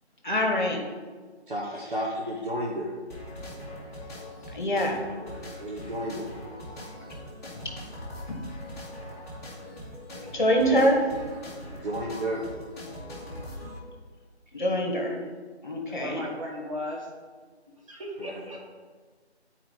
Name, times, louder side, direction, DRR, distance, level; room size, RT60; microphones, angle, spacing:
voice 1, 0.2-0.8 4.5-5.0 8.3-8.4 10.3-11.0 14.5-15.2 15.6-16.2, equal, 45° left, 2 dB, 1.3 m, -24 dB
voice 2, 1.5-2.9 5.6-6.3 11.7-12.5 18.2-18.3, equal, 50° right, -4 dB, 1.0 m, -32 dB
sound 1, 3.1-13.8, left 1 dB, 15° left, 1.3 m, -41 dB
voice 3, 16.0-17.1 17.9-18.6, left 1 dB, 30° right, -5 dB, 1.3 m, -36 dB
8.9 x 4.6 x 3.9 m, 1.5 s
figure-of-eight pair, 165°, 34 cm